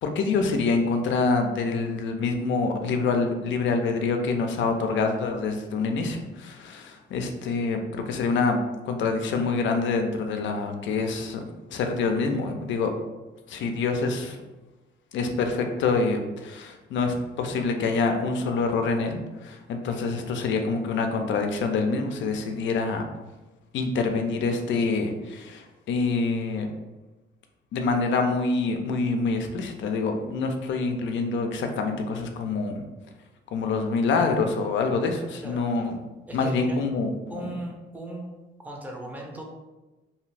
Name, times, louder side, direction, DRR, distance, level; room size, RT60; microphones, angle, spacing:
voice 1, 0.0-8.6 8.8-12.9 13.5-14.4 15.1-23.1 23.7-26.7 27.7-32.9 33.5-36.0 36.3-37.5, left 4 dB, 70° left, 5 dB, 0.5 m, -26 dB
voice 2, 36.3-36.8 37.3-38.3 38.6-39.4, right 1 dB, 10° right, -1 dB, 0.6 m, -37 dB
2.7 x 2.4 x 3.2 m, 1.1 s
cardioid pair, 90°, 20 cm